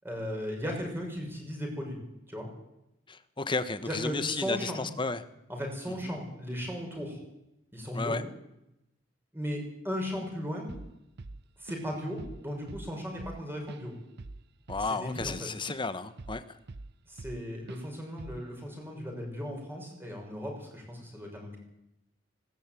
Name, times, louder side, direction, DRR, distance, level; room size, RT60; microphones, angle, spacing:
voice 1, 0.0-2.0 2.3-2.5 3.8-4.9 5.5-7.2 7.7-8.2 9.3-10.7 11.6-13.9 14.8-15.5 17.1-21.6, equal, 10° right, 1 dB, 6.0 m, -36 dB
voice 2, 3.1-5.2 7.9-8.2 14.7-16.4, left 3 dB, 25° left, 12 dB, 1.2 m, -33 dB
Drum kit / Drum, 10.7-10.9 11.2-11.9 12.2-12.4 12.7-15.9 16.2-17.4 17.7-17.9 18.2-18.5, right 2 dB, 60° right, 0.8 m, -44 dB
19.5 x 17.5 x 9.1 m, 0.87 s
head